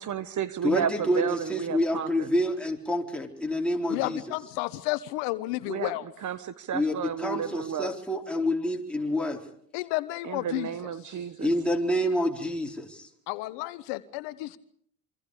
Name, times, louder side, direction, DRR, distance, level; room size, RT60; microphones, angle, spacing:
voice 1, 0.0-2.3 5.7-5.9 6.2-6.4 6.7-7.9 10.2-11.5, right 8 dB, 40° right, 14 dB, 1.3 m, -32 dB
voice 2, 0.6-4.2 6.7-9.4 11.4-13.1, left 1 dB, ahead, 1 dB, 4.1 m, -28 dB
voice 3, 3.9-6.1 9.7-10.7 13.3-14.6, left 19 dB, 65° left, 14 dB, 1.2 m, -31 dB
26.5 x 25.0 x 5.0 m, 0.63 s
hypercardioid pair, 75°, 47 cm